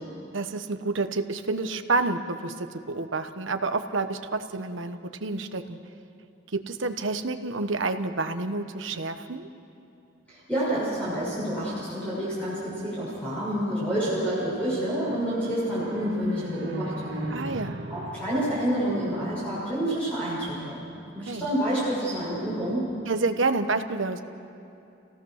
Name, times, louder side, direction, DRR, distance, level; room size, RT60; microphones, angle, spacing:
voice 1, 0.3-5.8 6.5-9.5 17.3-17.8 21.3-21.5 23.1-24.2, right 3 dB, 80° right, 8 dB, 1.1 m, -29 dB
voice 2, 10.3-17.3 17.9-20.8 21.1-22.8, right 1 dB, 5° left, -9 dB, 6.2 m, -28 dB
sound 1, 14.4-19.8, right 1 dB, 65° right, 1.9 m, -39 dB
29.5 x 17.0 x 6.5 m, 2.7 s
head